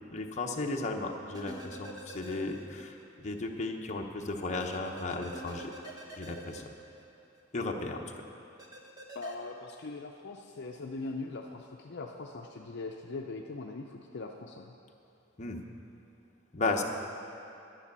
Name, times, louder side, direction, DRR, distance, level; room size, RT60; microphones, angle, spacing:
voice 1, 0.1-5.7 6.2-6.7 7.5-8.0 15.4-15.6 16.5-16.8, left 3 dB, 35° left, 1 dB, 1.0 m, -35 dB
sound 1, 1.3-3.0 3.3-3.4 4.6-7.4 8.6-9.3, right 1 dB, 20° right, 1.2 m, -46 dB
voice 2, 9.1-14.7, left 3 dB, 60° left, 1 dB, 0.6 m, -41 dB
10.5 x 10.0 x 6.7 m, 2.7 s
head